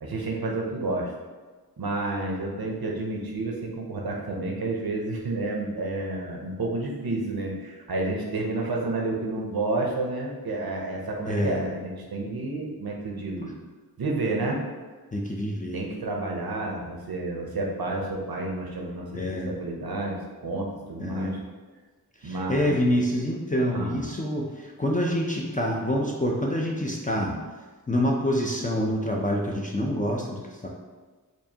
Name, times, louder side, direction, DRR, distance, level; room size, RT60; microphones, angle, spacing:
voice 1, 0.0-1.1 1.8-13.5 14.0-14.6 15.7-21.4 22.2-22.8 23.7-24.0 27.1-27.4, right 2 dB, 75° right, -1 dB, 0.7 m, -30 dB
voice 2, 11.3-11.6 15.1-15.8 19.1-19.5 21.0-21.4 22.2-27.3 27.9-30.7, equal, 20° left, -2 dB, 0.4 m, -26 dB
4.5 x 2.6 x 2.8 m, 1.3 s
wide cardioid pair, 65°, 37 cm